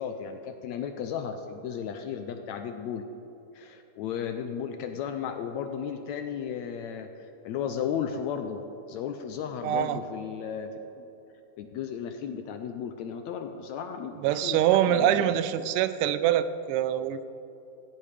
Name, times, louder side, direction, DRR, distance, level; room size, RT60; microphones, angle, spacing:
voice 1, 0.0-3.0 3.5-8.6 8.9-10.7 11.0-11.1 11.6-15.7, left 8 dB, 80° left, 6 dB, 1.7 m, -35 dB
voice 2, 9.6-10.0 14.2-17.2, right 11 dB, 90° right, 13 dB, 2.2 m, -24 dB
16.0 x 15.0 x 3.4 m, 3.0 s
omnidirectional pair, 3.7 m